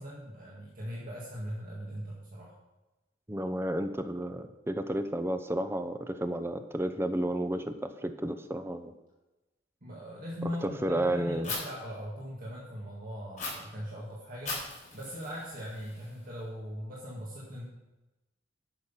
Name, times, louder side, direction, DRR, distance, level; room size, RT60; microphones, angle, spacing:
voice 1, 0.0-2.5 9.8-14.6 14.9-17.6, equal, 45° right, -5 dB, 2.0 m, -40 dB
voice 2, 3.3-8.9 10.6-11.5, right 1 dB, 15° right, 9 dB, 0.6 m, -32 dB
Fire, 11.4-11.6 13.4-13.5 14.5-16.4, left 3 dB, 40° left, 4.3 m, -39 dB
11.0 x 6.4 x 5.6 m, 1.1 s
head